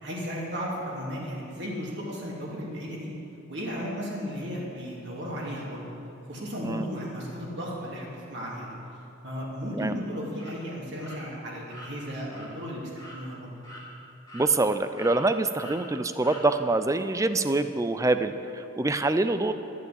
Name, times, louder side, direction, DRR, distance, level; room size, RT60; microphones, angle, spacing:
voice 1, 0.0-3.1 3.5-5.8 6.3-8.7 9.2-13.5, equal, 55° right, -5 dB, 3.0 m, -35 dB
sound 1, 10.4-10.5 11.0-11.2 11.7-11.9 12.3-12.5 13.0-13.2 13.6-13.8 14.3-14.7 15.0-15.2 15.6-15.8 16.2-16.4, equal, 20° left, 2.5 m, -44 dB
voice 2, 14.3-19.5, right 2 dB, 15° right, 10 dB, 0.4 m, -25 dB
13.5 x 8.3 x 7.9 m, 2.8 s
head